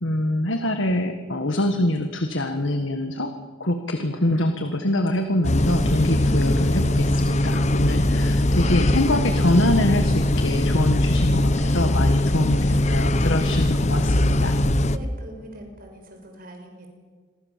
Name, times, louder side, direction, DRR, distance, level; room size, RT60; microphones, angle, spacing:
voice 1, 0.0-14.6, left 1 dB, 75° left, 6 dB, 1.7 m, -24 dB
sound 1, 5.4-15.0, left 1 dB, 35° left, 0.9 m, -21 dB
voice 2, 12.3-12.7 14.9-16.9, right 1 dB, 45° right, 3 dB, 6.6 m, -42 dB
28.0 x 23.0 x 7.5 m, 1.5 s
head